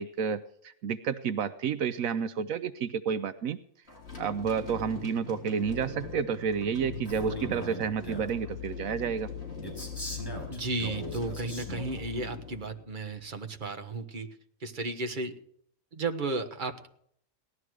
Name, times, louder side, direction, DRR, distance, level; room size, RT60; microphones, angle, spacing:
voice 1, 0.0-3.6 4.2-9.3, right 7 dB, 75° right, 13 dB, 1.1 m, -30 dB
sound 1, 3.9-13.3, left 6 dB, 45° left, 4.8 m, -41 dB
Male speech man speaking, 7.1-8.4 9.6-12.1, equal, 15° left, 5.1 m, -40 dB
voice 2, 10.5-14.3 14.6-15.4 15.9-16.9, right 3 dB, 35° right, 6 dB, 1.6 m, -34 dB
18.0 x 13.0 x 4.8 m, 0.65 s
omnidirectional pair, 1.4 m